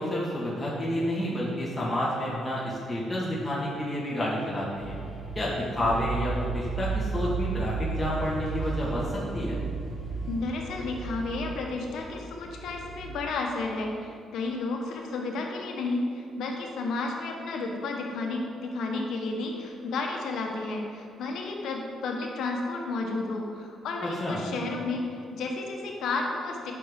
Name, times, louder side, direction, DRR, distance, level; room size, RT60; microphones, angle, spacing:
voice 1, 0.0-5.0 5.3-9.6 24.0-24.4, left 1 dB, 10° left, -7 dB, 1.7 m, -30 dB
sound 1, 4.7-13.2, right 4 dB, 40° right, 1.8 m, -34 dB
voice 2, 10.3-26.7, left 3 dB, 80° left, 1 dB, 1.1 m, -32 dB
9.1 x 6.1 x 3.7 m, 2.3 s
cardioid pair, 90°, 0 cm